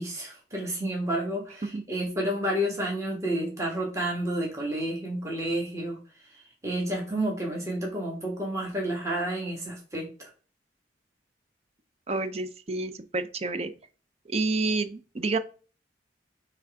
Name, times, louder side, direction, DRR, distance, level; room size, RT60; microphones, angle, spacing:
voice 1, 0.0-10.3, right 1 dB, 15° right, -1 dB, 1.6 m, -30 dB
voice 2, 12.1-13.7 14.3-15.4, right 3 dB, 35° right, 11 dB, 0.6 m, -29 dB
6.1 x 3.4 x 4.8 m, 0.38 s
head